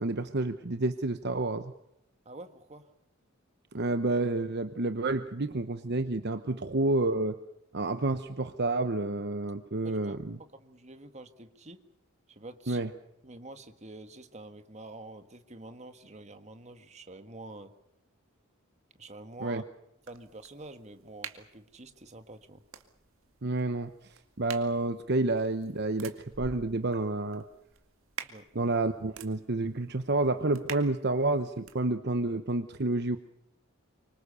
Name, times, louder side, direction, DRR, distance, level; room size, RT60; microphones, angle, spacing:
voice 1, 0.0-1.7 3.7-7.4 7.7-10.4 12.7-12.9 19.4-19.6 23.4-27.4 28.5-33.2, right 2 dB, 55° right, 9 dB, 1.0 m, -29 dB
voice 2, 2.2-2.9 9.8-10.2 10.5-11.8 12.3-12.8 13.2-17.7 19.0-19.6 20.1-22.6 28.2-28.5, right 2 dB, 35° right, 8 dB, 1.8 m, -47 dB
sound 1, 20.0-31.8, right 6 dB, 80° right, 2.2 m, -48 dB
25.0 x 24.5 x 6.9 m, 0.82 s
head